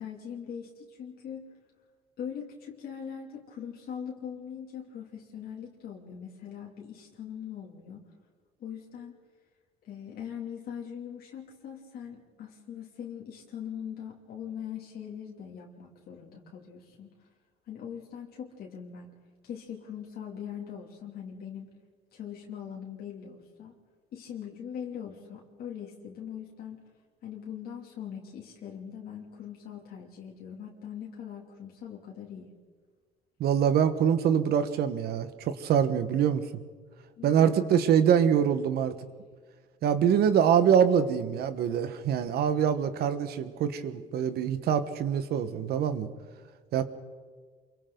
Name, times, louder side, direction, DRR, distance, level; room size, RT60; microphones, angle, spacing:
voice 1, 0.0-1.5 2.2-8.0 8.6-9.2 9.8-17.1 17.7-19.1 19.4-21.7 22.1-23.7 24.1-26.8 27.2-32.5 37.2-37.6, left 8 dB, 65° left, -1 dB, 2.8 m, -41 dB
voice 2, 33.4-36.4 37.2-38.9 39.8-46.1 46.7-46.8, right 8 dB, 70° right, 10 dB, 1.5 m, -24 dB
28.0 x 23.5 x 4.0 m, 1.5 s
cardioid pair, 110°, 17 cm